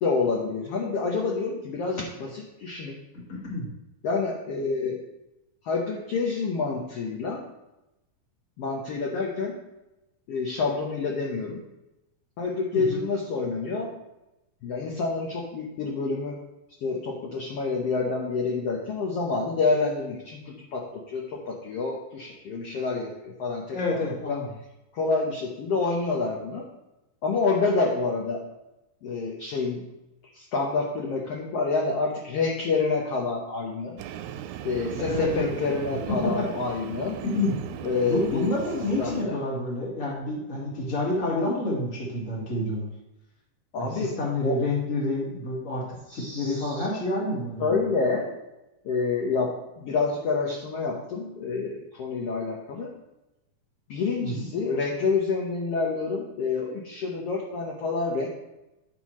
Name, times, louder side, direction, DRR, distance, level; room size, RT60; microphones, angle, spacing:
voice 1, 0.0-3.0 4.0-5.0 5.6-7.4 8.6-9.6 10.3-11.6 12.4-13.9 14.6-16.4 16.8-24.0 24.3-24.4 24.9-26.7 27.2-28.4 29.0-29.9 30.3-34.0 34.6-37.2 37.8-38.5 39.0-39.4 43.7-44.6 46.1-46.9 47.6-48.3 48.8-52.9 53.9-58.3, left 4 dB, 65° left, -2 dB, 1.6 m, -28 dB
voice 2, 3.3-3.7 12.7-13.0 23.7-24.4 35.1-35.5 36.2-36.5 37.2-37.6 38.1-42.9 43.8-45.8 46.1-47.9 54.2-54.5, left 2 dB, 30° left, -3 dB, 1.6 m, -28 dB
Train, 34.0-39.2, right 10 dB, 90° right, 2.3 m, -37 dB
10.5 x 5.7 x 3.1 m, 0.93 s
omnidirectional pair, 3.9 m